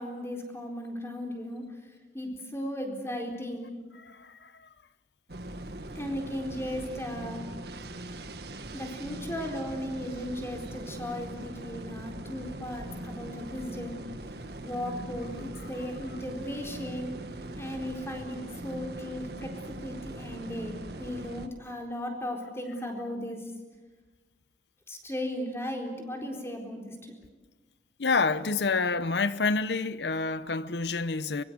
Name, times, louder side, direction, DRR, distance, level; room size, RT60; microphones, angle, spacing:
voice 1, 0.0-3.8 5.9-7.4 8.7-14.0 14.6-17.1 17.5-23.5 24.9-27.1, equal, 15° left, 4.1 m, -36 dB
voice 2, 3.9-4.7 28.0-31.4, left 4 dB, 80° left, 0.9 m, -28 dB
sound 1, 5.3-21.5, right 1 dB, 65° right, 1.7 m, -41 dB
24.5 x 23.0 x 8.1 m
head